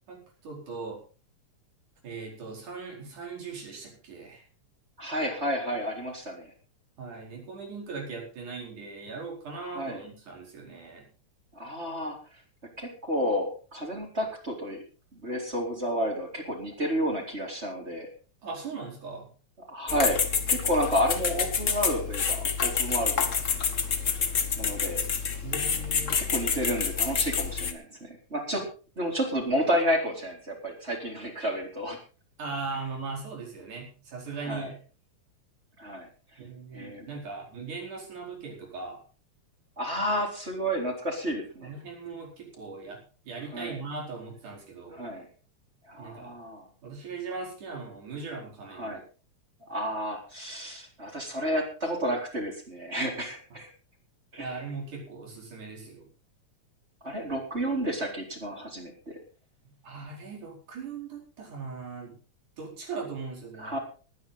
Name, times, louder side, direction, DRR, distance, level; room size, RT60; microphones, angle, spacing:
voice 1, 0.1-1.0 2.0-4.4 7.0-11.1 18.4-19.3 25.4-26.2 32.4-34.7 36.4-39.0 41.6-45.1 46.0-46.4 46.8-49.0 53.5-53.6 54.4-56.1 59.6-62.2 62.6-63.8, right 4 dB, 85° right, -1 dB, 6.3 m, -39 dB
voice 2, 5.0-6.5 9.7-10.0 11.5-12.2 12.8-14.8 15.1-18.1 19.7-20.2 20.5-23.3 24.6-25.0 26.2-28.7 29.0-32.0 34.5-34.7 35.8-36.1 36.7-37.1 39.8-41.7 43.5-43.8 44.9-45.3 45.9-46.6 48.8-49.0 49.7-53.7 54.3-54.5 57.0-59.2 63.6-63.8, equal, 20° right, 1 dB, 4.1 m, -31 dB
sound 1, 19.9-27.7, left 6 dB, 45° left, 0.9 m, -28 dB
21.0 x 9.7 x 4.1 m, 0.36 s
omnidirectional pair, 3.4 m